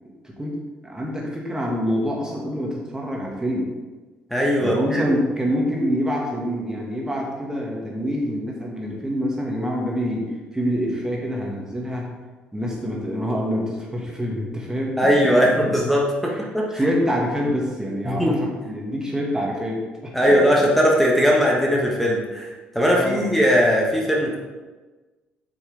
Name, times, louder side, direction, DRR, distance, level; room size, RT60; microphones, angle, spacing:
voice 1, 0.2-3.7 4.6-12.2 12.5-15.1 15.4-15.5 16.3-16.4 16.7-20.8 22.9-23.4, equal, 15° right, -2 dB, 2.1 m, -26 dB
voice 2, 4.3-5.0 15.0-16.9 18.0-18.4 20.1-24.4, equal, 5° left, -3 dB, 1.6 m, -19 dB
8.1 x 6.3 x 3.6 m, 1.3 s
figure-of-eight pair, 45°, 5 cm